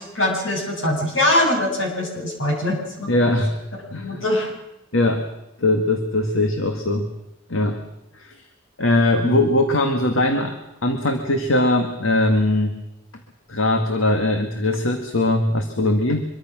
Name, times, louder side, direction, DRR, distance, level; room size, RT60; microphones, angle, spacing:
voice 1, 0.0-3.1 3.9-4.5 9.2-9.4, left 1 dB, 75° left, 1 dB, 7.4 m, -22 dB
voice 2, 3.1-3.6 3.9-4.2 4.9-5.2 5.6-7.1 7.5-7.8 8.2-8.4 8.8-10.6 10.8-12.8 13.5-16.3, left 1 dB, 90° left, 5 dB, 1.9 m, -20 dB
25.0 x 23.0 x 6.2 m, 0.88 s
head